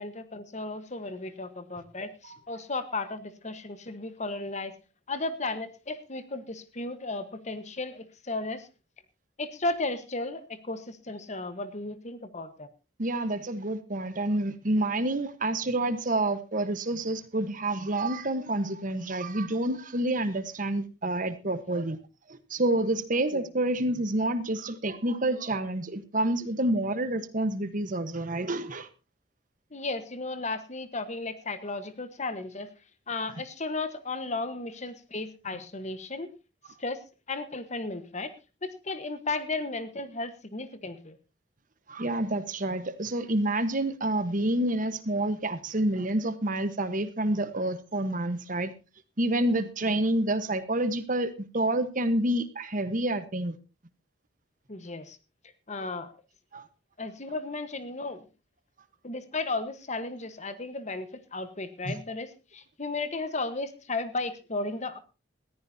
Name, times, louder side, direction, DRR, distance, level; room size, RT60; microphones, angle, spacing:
voice 1, 0.0-4.7 5.1-8.7 9.4-12.7 23.3-23.4 29.7-32.7 33.1-36.3 36.8-37.0 37.3-38.3 38.6-41.2 54.7-55.2 55.7-56.1 57.0-58.2 59.0-65.0, left 3 dB, 40° left, 11 dB, 1.3 m, -34 dB
voice 2, 13.0-22.0 22.3-28.9 41.9-48.7 49.2-53.6 56.5-56.7 61.8-62.0, right 1 dB, 45° right, 11 dB, 1.3 m, -28 dB
20.0 x 14.5 x 2.8 m, 0.31 s
head